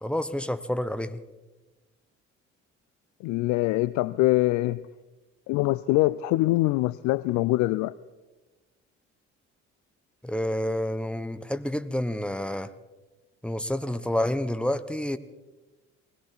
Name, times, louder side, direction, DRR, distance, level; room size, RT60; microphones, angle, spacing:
voice 1, 0.0-1.2 10.2-12.7 13.4-15.2, left 1 dB, 5° left, 0.8 m, -29 dB
voice 2, 3.2-4.8 5.5-7.9, left 18 dB, 50° left, 0.4 m, -24 dB
20.0 x 17.0 x 4.2 m
figure-of-eight pair, 50°, 38 cm